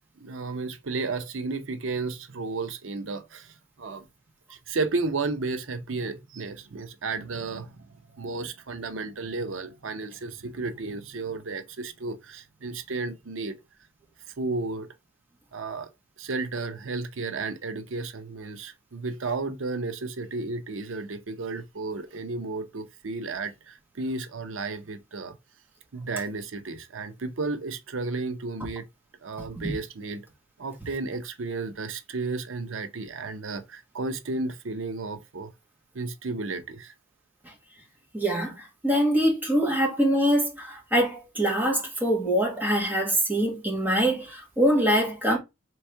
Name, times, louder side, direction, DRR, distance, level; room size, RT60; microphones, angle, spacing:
voice 1, 0.0-4.0 4.5-7.8 8.1-13.6 14.4-14.9 15.5-15.9 16.2-25.3 25.9-28.8 29.2-30.2 30.6-35.5 35.9-36.9, right 3 dB, 90° right, 0.7 m, -33 dB
voice 2, 38.1-45.4, equal, 10° right, 1.3 m, -24 dB
3.5 x 3.2 x 4.4 m
head